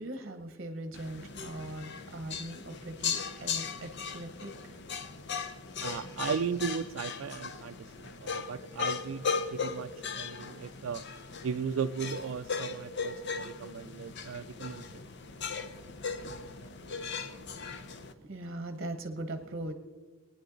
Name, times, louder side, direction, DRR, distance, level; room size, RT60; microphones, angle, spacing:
voice 1, 0.0-4.8 17.3-19.7, right 1 dB, 50° right, 0.9 m, -41 dB
sound 1, 0.9-18.1, left 5 dB, 55° left, 0.8 m, -38 dB
voice 2, 5.8-11.0 11.4-14.8, right 6 dB, 70° right, 0.4 m, -36 dB
20.0 x 10.0 x 3.9 m
head